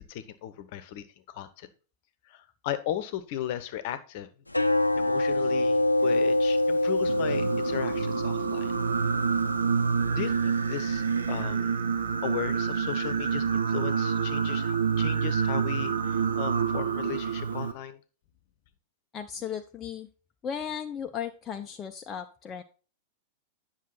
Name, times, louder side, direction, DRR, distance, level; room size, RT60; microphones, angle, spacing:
voice 1, 0.0-1.7 2.3-4.3 4.9-8.7 10.1-11.8 12.2-18.0, left 11 dB, 50° left, 13 dB, 0.9 m, -36 dB
sound 1, 4.5-11.4, left 1 dB, 85° left, 0.5 m, -27 dB
Singing, 7.0-17.7, right 6 dB, 70° right, 0.8 m, -27 dB
voice 2, 19.1-20.1 20.4-22.6, left 8 dB, 25° left, 5 dB, 0.6 m, -36 dB
9.5 x 6.4 x 4.0 m, 0.37 s
figure-of-eight pair, 95°, 0 cm